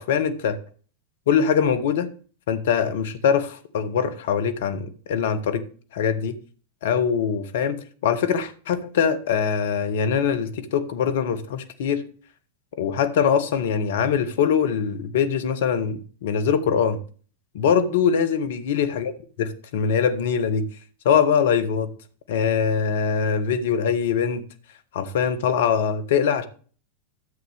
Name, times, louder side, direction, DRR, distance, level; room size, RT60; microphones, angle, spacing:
voice 1, 0.1-0.6 1.3-2.1 2.5-5.6 5.9-6.3 6.8-12.0 12.8-17.0 17.5-19.1 19.4-20.6 21.0-21.9 22.3-24.4 24.9-26.5, left 7 dB, 55° left, 1.2 m, -22 dB
13.0 x 7.7 x 3.5 m
figure-of-eight pair, 90°, 0 cm